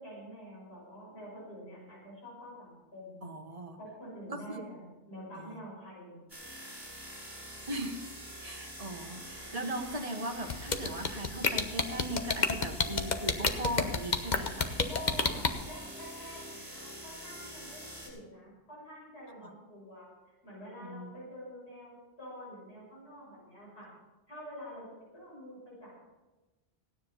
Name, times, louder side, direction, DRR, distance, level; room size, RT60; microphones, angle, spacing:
voice 1, 0.0-3.3 3.8-6.2 14.9-23.9 24.3-24.8 25.1-26.0, equal, 70° left, -6 dB, 6.7 m, -47 dB
voice 2, 3.2-3.8 4.3-4.7 5.3-5.6 7.7-8.1 8.4-14.8 19.4-19.5 20.8-21.1, right 1 dB, 35° right, 4 dB, 1.4 m, -38 dB
sound 1, 6.3-18.1, equal, 15° right, 5.4 m, -46 dB
sound 2, 10.5-15.5, left 4 dB, 45° left, 1.0 m, -28 dB
16.5 x 9.8 x 5.6 m, 1.1 s
omnidirectional pair, 1.1 m